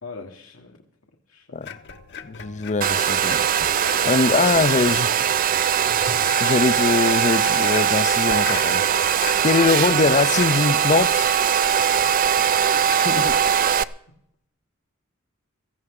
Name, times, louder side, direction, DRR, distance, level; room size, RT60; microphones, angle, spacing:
voice 1, 0.0-0.8 1.3-1.6 11.9-13.2, left 3 dB, 80° left, 1.6 m, -43 dB
sound 1, 1.6-13.5, left 6 dB, 55° left, 1.0 m, -39 dB
voice 2, 2.2-3.4 4.0-5.1 5.6-5.7 6.4-8.8 9.4-11.3 13.0-13.4, left 4 dB, 35° left, 0.5 m, -22 dB
Domestic sounds home sounds, 2.8-13.8, right 8 dB, 45° right, 0.4 m, -20 dB
17.5 x 15.0 x 3.7 m
head